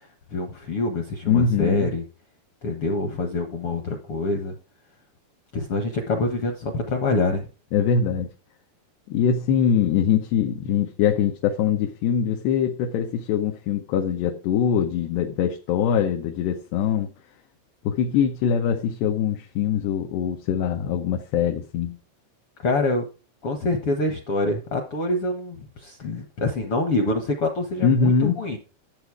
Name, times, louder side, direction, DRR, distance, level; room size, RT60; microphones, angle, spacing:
voice 1, 0.3-2.0 2.6-4.5 5.5-7.5 22.6-23.1 23.4-28.6, left 2 dB, 65° left, 1.4 m, -26 dB
voice 2, 1.3-1.9 7.7-8.3 9.1-17.1 17.8-22.0 27.8-28.4, left 7 dB, 85° left, 3.2 m, -23 dB
12.5 x 8.1 x 4.8 m
omnidirectional pair, 4.6 m